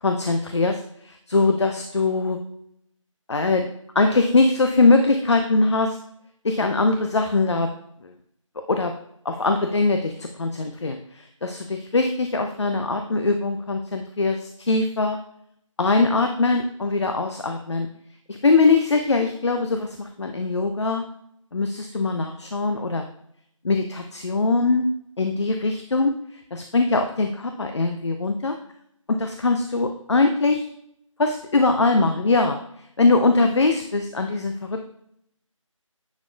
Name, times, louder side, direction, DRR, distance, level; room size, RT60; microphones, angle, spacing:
voice 1, 0.0-2.4 3.3-3.7 3.9-6.0 6.4-7.7 8.0-8.1 8.7-8.9 9.2-15.2 15.8-17.9 18.3-21.0 21.5-23.1 23.6-24.9 25.2-26.1 26.5-28.6 29.1-30.7 31.2-32.6 33.0-34.8, left 3 dB, 55° left, 6 dB, 0.5 m, -22 dB
9.5 x 4.4 x 2.3 m, 0.73 s
figure-of-eight pair, 160°, 17 cm